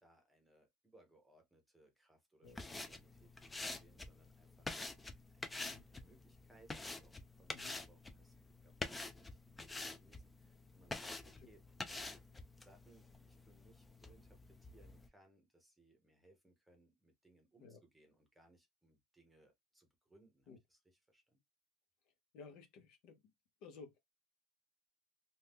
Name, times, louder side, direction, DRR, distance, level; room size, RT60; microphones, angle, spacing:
voice 1, 0.0-4.7 5.3-8.3 8.6-21.4, right 1 dB, 5° right, 0.9 m, -68 dB
sound 1, 2.5-15.1, left 2 dB, 10° left, 0.4 m, -48 dB
voice 2, 22.3-23.2 23.6-24.0, left 4 dB, 65° left, 0.9 m, -55 dB
2.7 x 2.3 x 3.4 m
cardioid pair, 160°, 0 cm